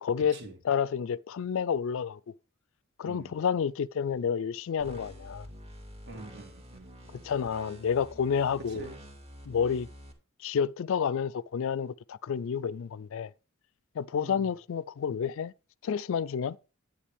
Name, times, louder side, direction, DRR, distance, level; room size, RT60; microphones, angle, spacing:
voice 1, 0.0-0.4 0.6-2.2 3.0-5.5 7.2-8.9 9.5-9.9 10.4-13.3 14.0-15.5 15.8-16.6, left 7 dB, 65° left, 0.4 m, -29 dB
voice 2, 3.0-3.4 6.1-7.3 8.7-9.0 14.1-14.5, right 2 dB, 55° right, 2.4 m, -46 dB
sound 1, 4.8-10.1, equal, 30° right, 2.0 m, -48 dB
10.0 x 8.9 x 3.4 m
head